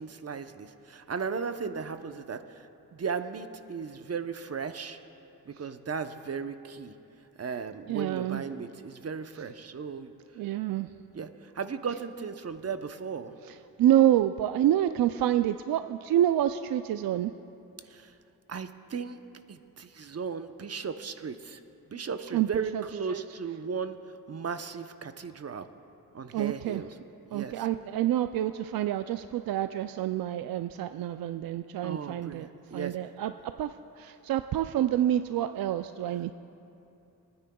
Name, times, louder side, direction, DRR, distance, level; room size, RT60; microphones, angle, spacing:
voice 1, 0.0-5.0 5.5-6.9 7.4-10.4 11.1-13.4 17.8-18.1 18.5-19.2 19.5-21.6 21.9-24.0 24.3-25.7 26.1-26.9 27.3-27.6 31.8-33.0, right 5 dB, 40° right, 9 dB, 0.9 m, -36 dB
voice 2, 7.9-8.4 10.4-10.9 13.8-17.3 22.3-22.5 22.7-22.8 23.1-23.2 26.3-26.8 27.3-32.5 32.7-36.3, right 12 dB, 60° right, 10 dB, 0.5 m, -27 dB
26.5 x 9.7 x 2.3 m, 2.8 s
supercardioid pair, 50°, 39 cm